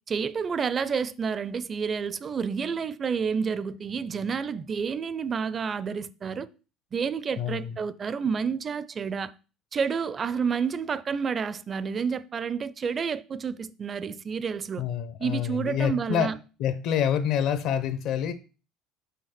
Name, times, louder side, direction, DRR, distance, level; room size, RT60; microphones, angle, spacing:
voice 1, 0.1-6.5 6.9-9.3 9.7-14.8 15.2-16.4, right 6 dB, 30° right, 0.4 m, -29 dB
voice 2, 7.4-7.8 14.8-16.3 16.6-18.3, left 8 dB, 60° left, 0.8 m, -27 dB
5.7 x 3.5 x 5.9 m
cardioid pair, 120°, 0 cm